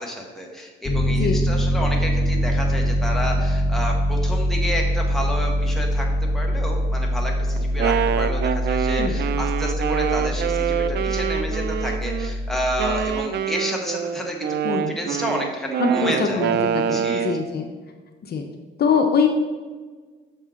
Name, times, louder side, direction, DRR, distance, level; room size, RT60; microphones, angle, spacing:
voice 1, 0.0-6.1 6.3-16.4 16.9-17.3, equal, ahead, -1 dB, 1.4 m, -30 dB
Piano, 0.8-13.1, equal, 25° left, 1.5 m, -23 dB
Wind instrument woodwind instrument, 7.6-12.3 12.8-17.5, right 8 dB, 60° right, 0.4 m, -25 dB
voice 2, 15.8-17.7 18.3-18.4 18.8-19.3, left 5 dB, 55° left, 3 dB, 0.7 m, -22 dB
6.3 x 5.4 x 3.7 m, 1.4 s
cardioid pair, 90°, 20 cm